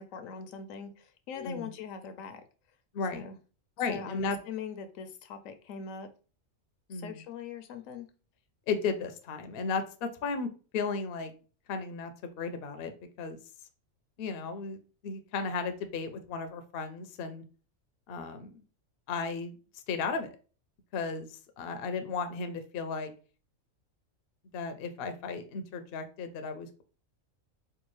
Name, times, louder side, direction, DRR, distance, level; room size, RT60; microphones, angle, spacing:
voice 1, 0.0-2.4 3.1-3.4 3.9-6.1 6.9-8.1, left 6 dB, 80° left, 9 dB, 1.0 m, -41 dB
voice 2, 1.4-1.7 2.9-3.2 3.8-4.4 6.9-7.2 8.7-11.3 11.7-13.4 14.2-17.4 18.1-18.6 19.1-19.5 19.9-20.3 20.9-23.1 24.5-26.8, left 4 dB, 60° left, 8 dB, 0.6 m, -35 dB
4.6 x 2.4 x 3.1 m, 0.36 s
omnidirectional pair, 1.4 m